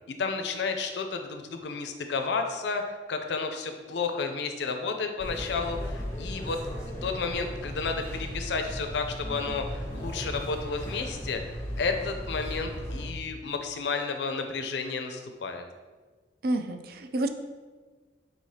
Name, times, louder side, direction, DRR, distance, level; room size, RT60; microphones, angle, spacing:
voice 1, 0.1-6.6 7.0-11.4 11.8-15.6, left 4 dB, 75° left, 5 dB, 0.4 m, -32 dB
sound 1, 5.2-13.1, equal, 15° left, 0.9 m, -36 dB
voice 2, 16.4-17.3, right 1 dB, 55° right, 7 dB, 0.4 m, -29 dB
4.8 x 4.0 x 2.7 m, 1.4 s
head